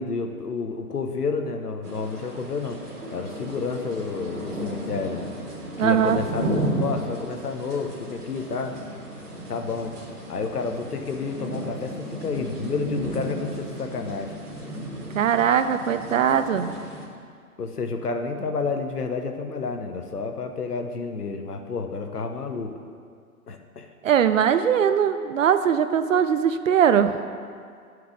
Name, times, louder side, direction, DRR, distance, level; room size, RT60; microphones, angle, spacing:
voice 1, 0.0-2.8 3.1-5.3 5.8-8.8 9.5-9.9 10.3-14.3 17.6-22.7 23.5-23.9, left 4 dB, 85° left, 5 dB, 0.8 m, -30 dB
sound 1, 1.8-17.1, right 1 dB, 85° right, 1.5 m, -34 dB
voice 2, 5.8-6.2 15.1-16.7 24.0-27.2, right 8 dB, 60° right, 10 dB, 0.5 m, -20 dB
9.7 x 4.7 x 3.6 m, 2.2 s
figure-of-eight pair, 125°, 45 cm